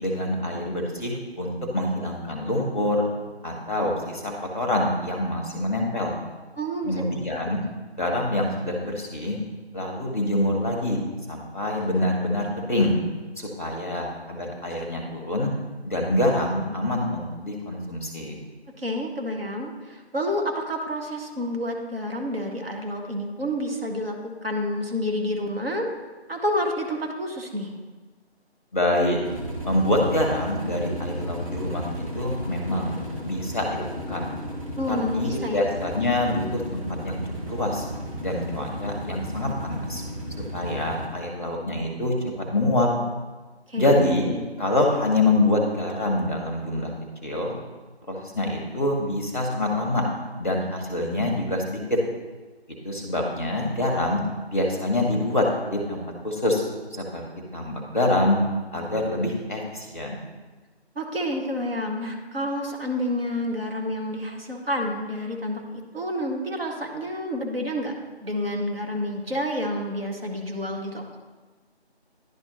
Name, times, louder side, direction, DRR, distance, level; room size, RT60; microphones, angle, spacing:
voice 1, 0.0-3.1 3.4-6.2 6.8-7.6 8.0-9.4 9.7-12.9 13.4-15.5 15.8-18.4 28.7-29.2 29.6-32.9 33.2-34.3 34.9-37.8 38.2-40.0 40.5-42.1 42.5-42.9 43.8-44.3 44.6-46.9 47.2-47.5 48.1-50.1 50.4-52.0 52.8-54.2 54.5-56.6 56.9-57.2 57.5-58.4 58.7-60.2, left 1 dB, 15° left, 0 dB, 0.8 m, -25 dB
voice 2, 6.6-7.0 18.8-24.2 24.4-25.9 26.3-27.7 34.8-35.6 43.7-44.5 60.9-67.9 68.2-71.2, equal, 60° right, 2 dB, 1.2 m, -29 dB
sound 1, 29.2-41.1, equal, 30° right, 1.1 m, -33 dB
10.5 x 4.3 x 2.9 m, 1.3 s
figure-of-eight pair, 165°, 33 cm